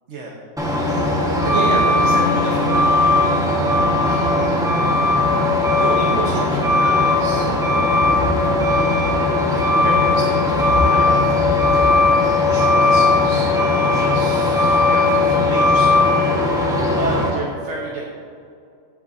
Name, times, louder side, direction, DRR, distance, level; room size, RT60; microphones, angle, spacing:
Truck, 0.6-17.3, left 2 dB, 5° right, 1.2 m, -17 dB
voice 1, 1.4-3.3 4.0-4.6 5.7-8.1 9.5-11.5 12.4-16.3 16.9-18.0, right 2 dB, 70° right, -2 dB, 1.3 m, -30 dB
15.0 x 7.5 x 2.7 m, 2.3 s
omnidirectional pair, 1.3 m